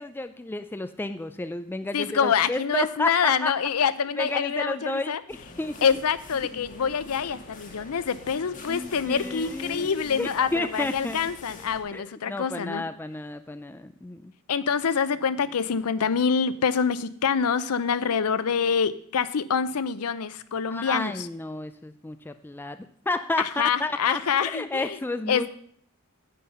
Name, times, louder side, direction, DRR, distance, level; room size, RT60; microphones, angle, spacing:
voice 1, 0.0-3.5 4.1-5.8 8.7-11.3 11.9-14.3 20.7-22.8 23.1-25.5, left 2 dB, 10° left, 10 dB, 0.3 m, -31 dB
voice 2, 1.9-5.2 5.8-12.8 14.5-21.3 23.4-25.0 25.3-25.5, left 6 dB, 80° left, 15 dB, 0.6 m, -26 dB
sound 1, 5.3-11.8, left 2 dB, 35° left, 1.6 m, -44 dB
9.3 x 7.9 x 5.5 m, 0.64 s
head